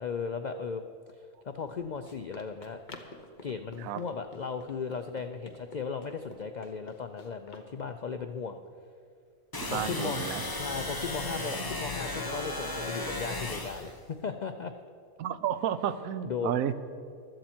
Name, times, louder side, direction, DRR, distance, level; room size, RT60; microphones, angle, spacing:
voice 1, 0.0-2.8 3.4-8.6 9.7-10.3 10.6-14.7 16.2-16.6, left 5 dB, 80° left, 7 dB, 0.4 m, -36 dB
Run, 1.5-7.7, left 2 dB, 35° left, 1.1 m, -51 dB
sound 1, 9.5-13.9, left 2 dB, 20° left, 0.9 m, -35 dB
voice 2, 9.6-10.4 15.2-16.7, right 10 dB, 85° right, 13 dB, 1.1 m, -31 dB
15.5 x 12.5 x 4.4 m, 2.3 s
omnidirectional pair, 1.4 m